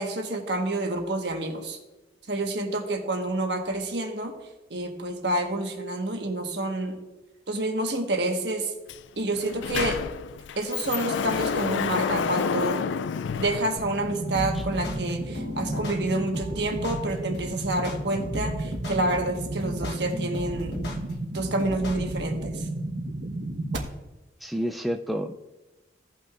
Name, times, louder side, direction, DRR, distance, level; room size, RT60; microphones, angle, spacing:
voice 1, 0.0-1.8 2.3-4.3 4.7-7.0 7.5-8.7 9.2-10.0 10.6-12.8 13.4-20.8 21.3-22.7, right 2 dB, 70° right, 3 dB, 1.3 m, -28 dB
Sliding door, 8.9-9.0 9.3-14.3, left 6 dB, 85° left, 0.3 m, -29 dB
sound 1, 13.8-23.8, right 2 dB, 90° right, 1.2 m, -33 dB
sound 2, 14.3-22.3, left 1 dB, 70° left, 1.1 m, -37 dB
voice 2, 24.4-25.3, equal, ahead, 3 dB, 0.3 m, -29 dB
16.5 x 5.8 x 2.5 m, 1.1 s
head